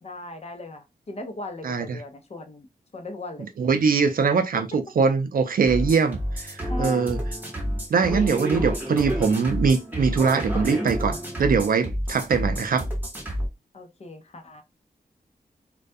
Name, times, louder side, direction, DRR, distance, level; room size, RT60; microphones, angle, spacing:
voice 1, 0.0-2.7 2.9-3.5 4.5-4.6 6.7-7.2 13.7-14.6, left 2 dB, 40° left, 0.5 m, -37 dB
voice 2, 1.6-2.0 3.6-7.2 7.9-12.8, right 5 dB, 60° right, 0.4 m, -22 dB
sound 1, 5.7-13.5, equal, 10° right, 0.9 m, -29 dB
2.3 x 2.1 x 2.6 m
wide cardioid pair, 90°, 17 cm